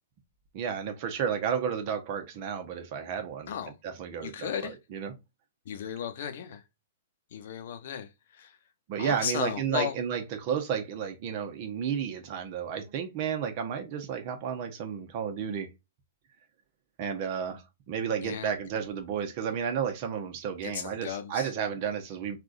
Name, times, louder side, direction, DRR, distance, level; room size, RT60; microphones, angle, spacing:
voice 1, 0.5-3.5 3.8-5.1 8.9-15.7 17.0-22.4, right 7 dB, 45° right, 1.0 m, -32 dB
voice 2, 4.2-4.7 5.7-6.6 7.3-8.1 8.4-8.5 9.0-9.9 18.2-18.5 20.6-21.5, left 8 dB, 60° left, 0.7 m, -35 dB
3.6 x 2.5 x 2.5 m
hypercardioid pair, 115°, 0 cm